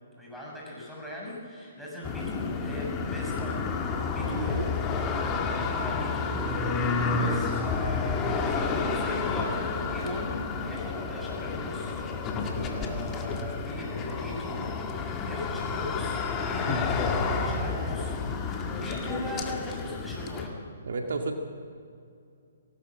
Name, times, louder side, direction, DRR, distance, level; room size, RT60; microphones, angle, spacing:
voice 1, 0.2-3.6 4.1-4.6 5.7-12.0 12.4-20.6, left 1 dB, ahead, -5 dB, 7.0 m, -39 dB
sound 1, 2.0-20.5, left 4 dB, 20° left, 2.0 m, -30 dB
voice 2, 4.3-4.7 18.8-18.9 20.9-21.4, right 3 dB, 65° right, 4 dB, 2.0 m, -32 dB
18.5 x 18.5 x 7.6 m, 2.4 s
figure-of-eight pair, 135°, 0 cm